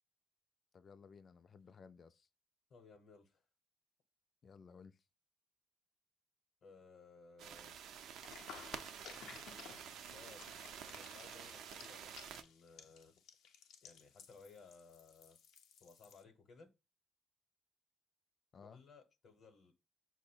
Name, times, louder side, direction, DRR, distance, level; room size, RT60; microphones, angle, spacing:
voice 1, 0.7-2.3 4.4-5.0 18.5-18.8, left 5 dB, 45° left, 0.3 m, -58 dB
voice 2, 2.7-3.4 6.6-7.7 10.0-10.5 10.9-13.2 13.8-15.4 15.8-16.7 18.6-19.7, left 4 dB, 60° left, 0.8 m, -60 dB
sound 1, 7.4-12.4, right 8 dB, 80° right, 0.4 m, -50 dB
sound 2, 8.2-16.2, left 7 dB, 85° left, 0.6 m, -57 dB
4.9 x 2.1 x 4.3 m
cardioid pair, 90°, 0 cm